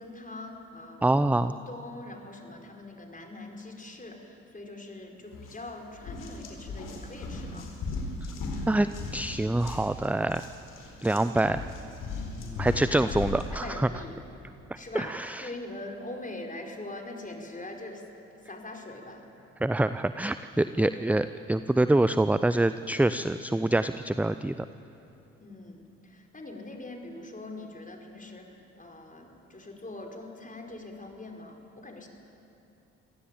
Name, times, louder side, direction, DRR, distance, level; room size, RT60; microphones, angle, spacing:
voice 1, 0.0-1.1 1.4-7.7 11.2-11.5 13.0-13.2 13.5-14.2 14.7-18.1 18.4-19.3 25.4-32.1, left 2 dB, 20° left, 2 dB, 5.2 m, -42 dB
voice 2, 1.0-1.5 8.7-8.9 9.1-10.5 11.0-11.6 12.6-13.9 14.9-15.5 19.6-24.7, right 1 dB, 5° right, 12 dB, 0.6 m, -25 dB
sound 1, 5.3-5.6 6.0-13.5, left 3 dB, 60° left, 4.5 m, -37 dB
25.5 x 17.0 x 8.7 m, 2.9 s
hypercardioid pair, 45°, 35 cm